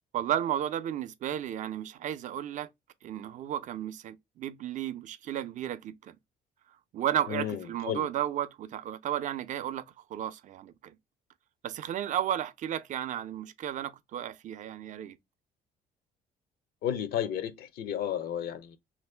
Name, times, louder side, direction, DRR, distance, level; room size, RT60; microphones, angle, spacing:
voice 1, 0.1-2.7 3.0-6.1 6.9-9.8 10.1-11.0 11.6-15.2, right 11 dB, 50° right, 0.4 m, -33 dB
voice 2, 7.3-7.6 7.8-8.1 16.8-18.8, left 10 dB, 65° left, 0.5 m, -32 dB
2.9 x 2.6 x 3.2 m
cardioid pair, 110°, 17 cm